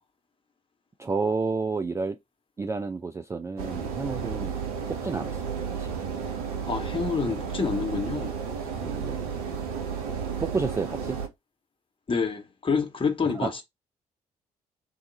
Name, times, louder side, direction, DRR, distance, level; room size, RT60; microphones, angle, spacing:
voice 1, 1.0-2.2 2.6-4.6 4.9-5.4 5.8-5.9 8.8-9.2 10.4-11.2 13.4-13.5, right 4 dB, 15° right, 0.3 m, -30 dB
sound 1, 3.6-11.3, right 6 dB, 75° right, 0.6 m, -32 dB
voice 2, 6.7-8.3 12.1-13.6, left 5 dB, 25° left, 1.0 m, -27 dB
3.9 x 2.3 x 3.9 m
figure-of-eight pair, 40°, 19 cm